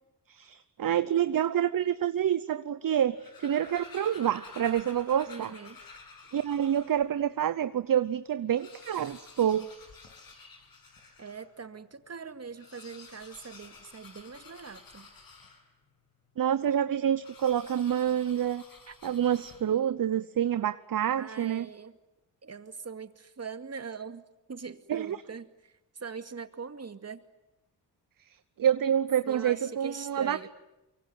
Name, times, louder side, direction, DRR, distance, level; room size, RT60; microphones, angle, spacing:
voice 1, 0.3-5.5 6.3-9.7 16.4-18.6 19.0-21.7 24.9-25.2 28.6-30.5, right 9 dB, 55° right, 13 dB, 0.9 m, -27 dB
sound 1, 3.0-7.1 7.7-7.8 8.0-8.1 8.4-11.5 12.5-15.9 17.2-19.9, left 4 dB, 55° left, 6.9 m, -51 dB
voice 2, 5.3-5.8 11.2-15.1 18.9-19.0 21.2-22.0 22.4-24.2 24.5-27.2 29.3-30.5, right 5 dB, 40° right, 9 dB, 2.3 m, -42 dB
24.0 x 24.0 x 9.5 m, 0.94 s
cardioid pair, 65°, 40 cm